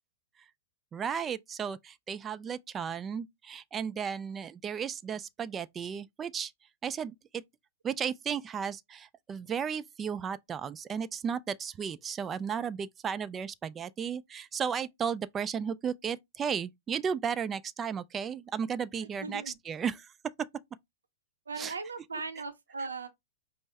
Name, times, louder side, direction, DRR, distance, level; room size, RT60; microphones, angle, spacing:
voice 1, 0.9-6.5 6.8-7.4 7.8-20.1 21.6-21.7, right 7 dB, 25° right, 0.3 m, -34 dB
voice 2, 19.2-19.6 21.5-23.1, right 4 dB, 90° right, 0.6 m, -38 dB
5.2 x 2.0 x 3.3 m
hypercardioid pair, 110°, 0 cm